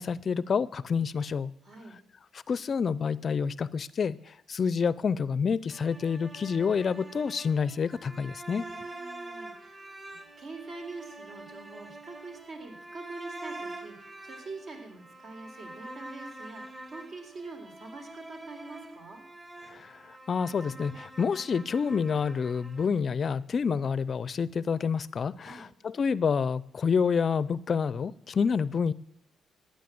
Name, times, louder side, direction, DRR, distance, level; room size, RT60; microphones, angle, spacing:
voice 1, 0.0-1.5 2.3-8.7 19.7-28.9, left 6 dB, 45° left, 19 dB, 0.5 m, -28 dB
voice 2, 1.6-2.0 8.7-19.2 25.4-25.7, right 3 dB, 60° right, 4 dB, 4.0 m, -45 dB
sound 1, 5.7-22.8, right 2 dB, 25° right, 2.0 m, -45 dB
15.0 x 10.0 x 7.8 m, 0.74 s
cardioid pair, 90°, 0 cm